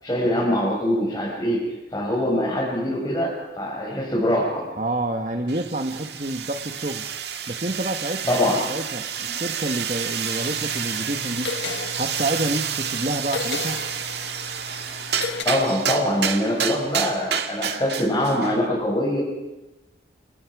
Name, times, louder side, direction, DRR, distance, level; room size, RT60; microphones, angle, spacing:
voice 1, 0.0-4.7 8.3-8.6 9.2-9.4 15.4-19.2, left 1 dB, 20° left, -4 dB, 5.7 m, -23 dB
voice 2, 4.8-7.1 7.5-8.3 8.7-11.6 12.0-13.8, right 1 dB, 40° right, 5 dB, 1.4 m, -28 dB
sound 1, 5.5-18.6, right 8 dB, 60° right, 2.0 m, -29 dB
sound 2, 10.4-15.4, left 4 dB, 70° left, 1.7 m, -34 dB
30.0 x 28.5 x 4.9 m, 1.0 s
head